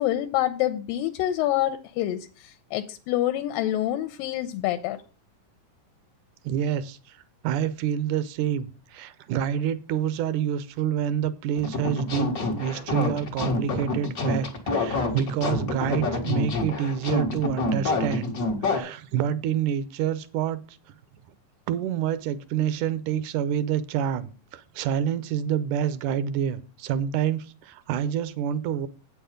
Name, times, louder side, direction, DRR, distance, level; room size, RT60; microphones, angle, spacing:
voice 1, 0.0-5.0, left 13 dB, 85° left, 2.4 m, -27 dB
voice 2, 6.4-7.2 7.4-18.4 18.6-20.8 21.7-28.9, right 9 dB, 75° right, 1.9 m, -28 dB
sound 1, 11.6-18.8, left 2 dB, 60° left, 0.9 m, -27 dB
8.4 x 7.0 x 5.0 m
omnidirectional pair, 4.1 m